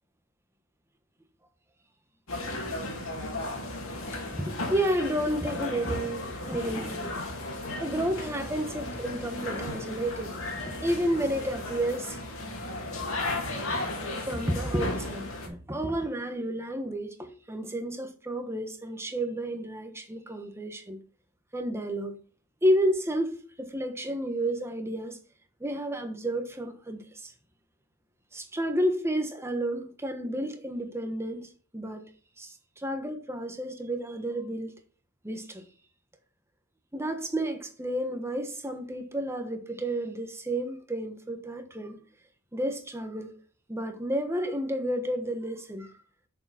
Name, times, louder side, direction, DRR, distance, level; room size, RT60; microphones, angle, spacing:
sound 1, 2.3-15.5, left 2 dB, 70° left, 2.4 m, -35 dB
voice 1, 4.3-7.2 7.8-10.4 10.6-12.2 13.6-21.0 21.5-22.2 22.6-25.2 25.6-27.3 28.3-32.0 32.4-34.7 35.2-35.6 36.9-41.9 42.5-43.3 43.7-45.9, right 1 dB, 10° right, 1.2 m, -31 dB
6.9 x 6.8 x 4.2 m
head